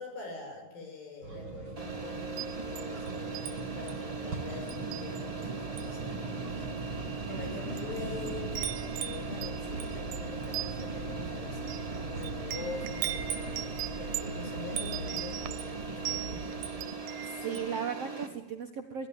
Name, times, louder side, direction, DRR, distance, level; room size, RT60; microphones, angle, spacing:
voice 1, 0.0-16.6, left 3 dB, 90° left, 2 dB, 8.1 m, -44 dB
sound 1, 1.2-16.8, right 3 dB, 35° right, 5.3 m, -40 dB
sound 2, 1.8-18.3, right 4 dB, 10° right, 2.8 m, -40 dB
Wind chime, 2.2-3.5 3.9-4.1 4.7-5.4 5.7-6.0 6.8-6.9 7.5-17.7, right 12 dB, 85° right, 2.7 m, -39 dB
voice 2, 17.0-19.1, right 7 dB, 55° right, 3 dB, 2.2 m, -37 dB
23.5 x 16.5 x 8.9 m, 1.0 s
omnidirectional pair, 4.0 m